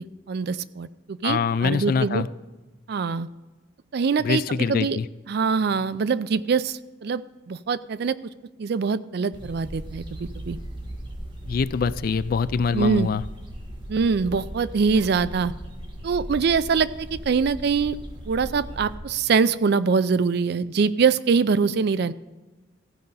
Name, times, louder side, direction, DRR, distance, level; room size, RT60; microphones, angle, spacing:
voice 1, 0.0-2.2 2.9-3.3 3.9-4.4 4.7-5.0 5.3-7.2 7.5-8.2 8.6-10.6 12.7-13.1 13.9-15.5 16.0-18.0 18.3-22.1, right 5 dB, 60° right, 15 dB, 0.4 m, -23 dB
voice 2, 1.2-2.3 4.2-5.1 11.4-13.2, left 5 dB, 50° left, 16 dB, 0.3 m, -24 dB
sound 1, 9.3-19.0, right 1 dB, 30° right, 1.6 m, -38 dB
15.0 x 5.2 x 5.5 m, 1.2 s
head